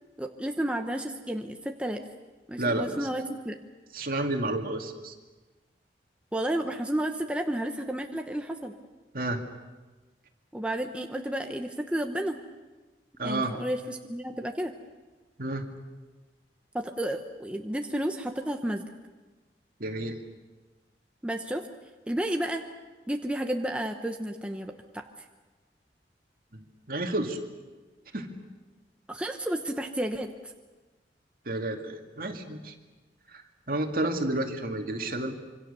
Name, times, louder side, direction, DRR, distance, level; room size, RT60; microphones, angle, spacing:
voice 1, 0.2-2.0 2.5-3.6 6.3-8.7 10.5-12.4 13.2-14.7 16.7-18.8 21.2-21.7 22.1-22.6 23.1-25.1 29.1-30.5, right 1 dB, 5° right, 3 dB, 1.0 m, -31 dB
voice 2, 2.6-3.0 3.9-5.1 9.1-9.4 13.2-13.5 15.4-15.7 19.8-20.2 26.5-27.4 28.1-28.3 31.5-32.7 33.3-33.4 33.7-35.3, right 2 dB, 55° right, 4 dB, 2.4 m, -30 dB
26.5 x 24.5 x 6.9 m, 1.3 s
head